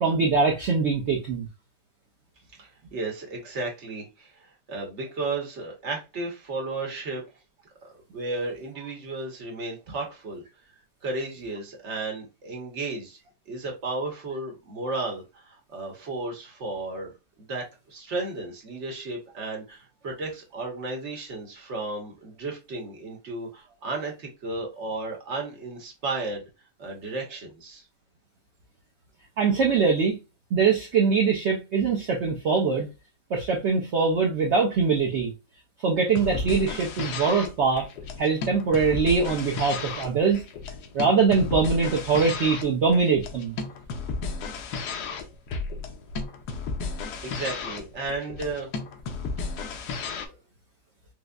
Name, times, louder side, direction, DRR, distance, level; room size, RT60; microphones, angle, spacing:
voice 1, 0.0-1.5 29.4-30.2 30.5-32.9 33.3-35.3 35.8-37.9 38.2-40.4 40.9-43.6, right 5 dB, 65° right, 0.6 m, -23 dB
voice 2, 2.6-7.2 7.8-10.4 11.0-13.2 13.5-17.1 17.4-26.5 26.8-27.8 47.2-48.7, right 3 dB, 50° right, 1.1 m, -34 dB
sound 1, 36.1-50.3, left 4 dB, 70° left, 1.1 m, -34 dB
4.9 x 2.0 x 2.3 m
omnidirectional pair, 1.8 m